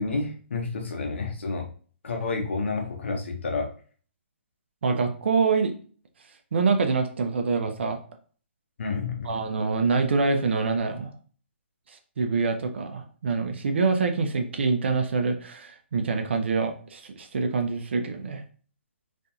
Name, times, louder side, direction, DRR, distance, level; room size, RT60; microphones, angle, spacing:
voice 1, 0.0-1.7 2.0-3.7 8.8-9.4, left 4 dB, 75° left, 2 dB, 0.7 m, -29 dB
voice 2, 4.8-5.7 6.5-8.0 9.2-11.1 11.9-18.4, right 4 dB, 70° right, 5 dB, 0.4 m, -25 dB
2.7 x 2.5 x 2.2 m, 0.42 s
hypercardioid pair, 135°, 6 cm